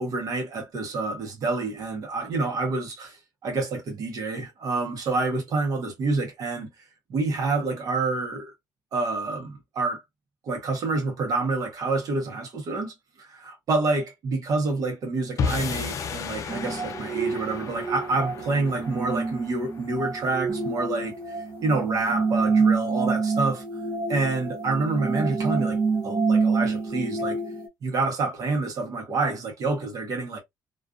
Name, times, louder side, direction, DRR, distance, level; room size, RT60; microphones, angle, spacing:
voice 1, 0.0-6.7 7.1-8.5 8.9-10.0 10.4-23.6 24.1-25.8 26.0-27.4 27.8-30.4, right 3 dB, 55° right, 0.9 m, -28 dB
sound 1, 15.4-21.8, left 5 dB, 45° left, 0.4 m, -34 dB
sound 2, 16.5-27.7, right 4 dB, 30° right, 0.8 m, -27 dB
2.4 x 2.4 x 2.3 m
cardioid pair, 145°, 7 cm